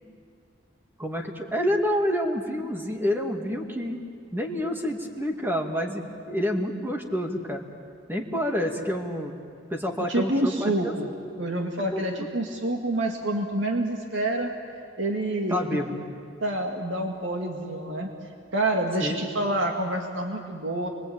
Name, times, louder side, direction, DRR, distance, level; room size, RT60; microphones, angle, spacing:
voice 1, 1.0-4.0 4.3-7.6 8.1-9.4 9.7-10.9 11.9-12.3 15.5-16.0 19.0-19.2, equal, 10° right, 2 dB, 2.3 m, -28 dB
voice 2, 10.1-11.1 11.4-14.5 15.0-15.6 16.4-18.1 18.5-20.9, right 1 dB, 80° right, 2 dB, 2.2 m, -27 dB
29.0 x 23.5 x 8.9 m, 2.4 s
head